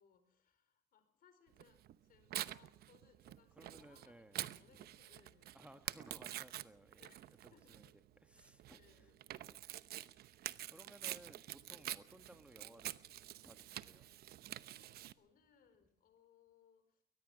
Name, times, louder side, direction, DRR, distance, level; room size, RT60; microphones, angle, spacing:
voice 1, 0.0-5.8 7.0-8.0 8.3-9.6 11.7-11.9 14.7-17.0, left 7 dB, 60° left, 10 dB, 4.7 m, -70 dB
Tearing, 1.6-15.1, right 13 dB, 70° right, 0.9 m, -47 dB
voice 2, 3.5-4.8 5.5-7.1 7.4-7.9 8.2-9.1 10.7-12.9 13.4-14.1, right 1 dB, 5° right, 9 dB, 1.2 m, -60 dB
23.0 x 19.5 x 6.2 m, 0.63 s
cardioid pair, 110°, 17 cm